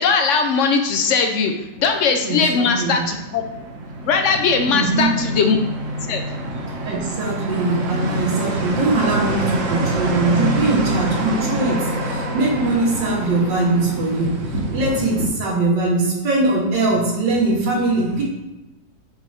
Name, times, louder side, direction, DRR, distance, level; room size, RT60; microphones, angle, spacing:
voice 1, 0.0-3.4 4.1-5.6 6.1-6.2, left 5 dB, 80° left, 5 dB, 0.6 m, -19 dB
sound 1, 1.8-15.3, right 1 dB, 50° right, 1.2 m, -26 dB
voice 2, 2.2-3.1 4.7-5.2 6.8-14.4 14.7-18.2, right 2 dB, 90° right, -6 dB, 2.0 m, -21 dB
5.3 x 4.0 x 4.9 m, 1.0 s
omnidirectional pair, 1.9 m